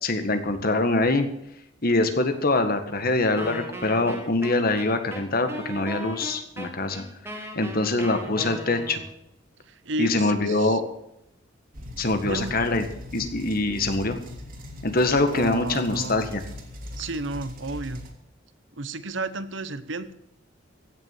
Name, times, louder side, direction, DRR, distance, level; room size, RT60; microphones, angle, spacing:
voice 1, 0.0-1.3 1.8-7.0 7.5-9.0 10.0-10.8 12.0-12.8 13.1-14.2 14.8-16.4, left 2 dB, 50° left, 8 dB, 1.8 m, -24 dB
Wind instrument woodwind instrument, 3.4-9.2, right 1 dB, 15° right, 2.3 m, -37 dB
voice 2, 9.8-10.8 12.2-12.9 15.3-16.3 17.0-18.0 18.8-20.1, right 2 dB, 70° right, 13 dB, 1.0 m, -32 dB
sound 1, 11.7-18.1, left 1 dB, 50° right, 2.8 m, -40 dB
15.5 x 7.1 x 9.1 m, 0.76 s
head